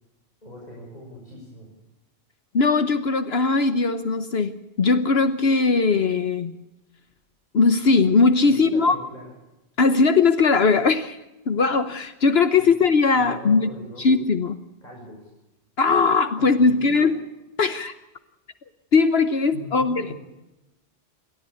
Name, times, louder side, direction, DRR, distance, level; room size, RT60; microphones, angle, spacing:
voice 1, 0.4-1.7 8.4-9.3 12.5-12.7 13.1-14.0 14.8-15.3 16.4-17.1 19.5-20.2, left 2 dB, 40° left, -3 dB, 6.8 m, -41 dB
voice 2, 2.5-6.5 7.5-8.9 9.8-11.2 11.5-13.7 14.0-14.6 15.8-17.1 17.6-17.9 18.9-20.0, left 4 dB, 65° left, 10 dB, 1.3 m, -19 dB
28.5 x 13.5 x 8.5 m, 0.98 s
omnidirectional pair, 1.1 m